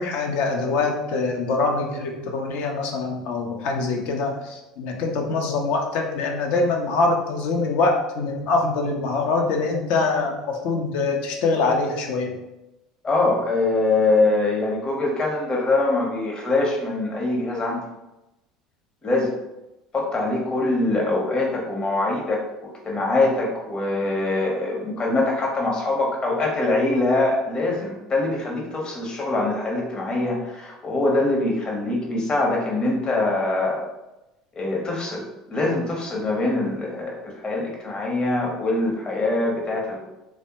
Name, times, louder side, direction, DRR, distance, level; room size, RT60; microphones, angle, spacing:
voice 1, 0.0-12.3, left 3 dB, 60° left, 2 dB, 0.6 m, -24 dB
voice 2, 13.0-17.8 19.0-19.3 19.9-33.9 34.5-40.0, left 2 dB, 30° left, -2 dB, 0.8 m, -23 dB
3.3 x 2.1 x 2.9 m, 0.96 s
figure-of-eight pair, 65°, 3 cm